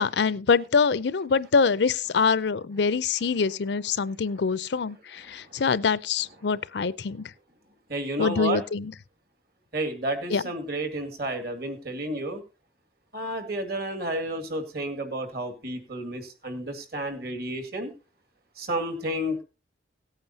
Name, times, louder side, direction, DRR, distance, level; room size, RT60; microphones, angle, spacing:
voice 1, 0.0-7.2 8.2-8.9 10.3-10.4, left 5 dB, 65° left, 0.5 m, -24 dB
voice 2, 5.2-5.6 7.9-8.6 9.7-12.4 13.1-17.9 18.6-19.4, right 1 dB, 55° right, 2.1 m, -31 dB
17.5 x 8.9 x 2.7 m
head